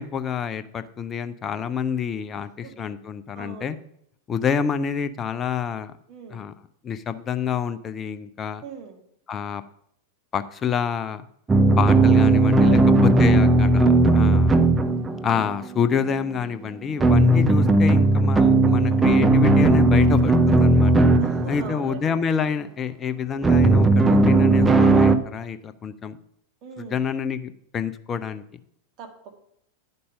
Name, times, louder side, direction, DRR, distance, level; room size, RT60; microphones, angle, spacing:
voice 1, 0.0-3.8 4.3-5.9 6.3-6.5 6.8-8.6 9.3-9.6 10.3-11.3 11.8-14.6 15.2-20.9 21.5-26.2 26.8-28.4, left 7 dB, 25° left, 12 dB, 0.5 m, -28 dB
voice 2, 2.3-2.8 3.3-3.8 6.1-6.5 8.6-9.0 12.1-13.4 18.7-19.2 21.2-22.1 26.6-27.1 29.0-29.3, right 6 dB, 40° right, 4 dB, 1.7 m, -41 dB
sound 1, 11.5-15.9 17.0-21.9 23.4-25.2, right 2 dB, 15° right, 0.6 m, -17 dB
9.9 x 5.4 x 5.5 m, 0.72 s
figure-of-eight pair, 90°, 0 cm